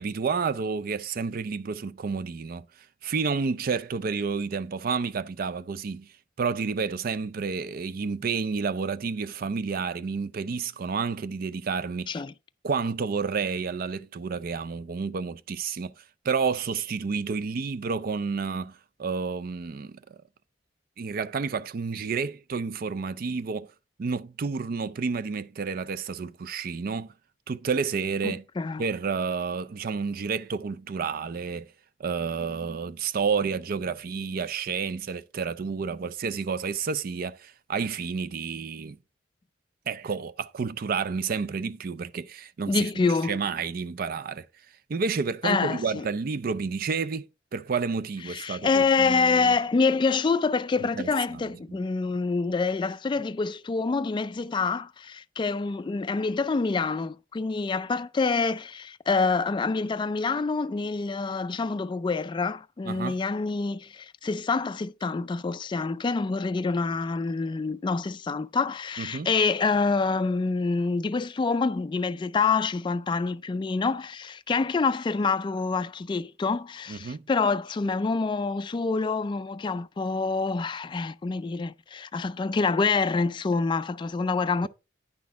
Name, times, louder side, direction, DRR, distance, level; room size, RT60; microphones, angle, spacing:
voice 1, 0.0-2.6 3.0-6.1 6.4-12.2 12.6-20.2 21.0-23.7 24.0-27.1 27.5-28.4 28.8-31.7 32.0-39.0 39.9-44.5 44.9-49.5 50.8-51.4 62.9-63.2 69.0-69.3 76.9-77.2, right 5 dB, 50° right, 0.4 m, -30 dB
voice 2, 28.2-28.8 42.7-43.4 45.4-46.0 48.3-84.7, left 4 dB, 25° left, 0.3 m, -26 dB
9.4 x 6.1 x 3.4 m
head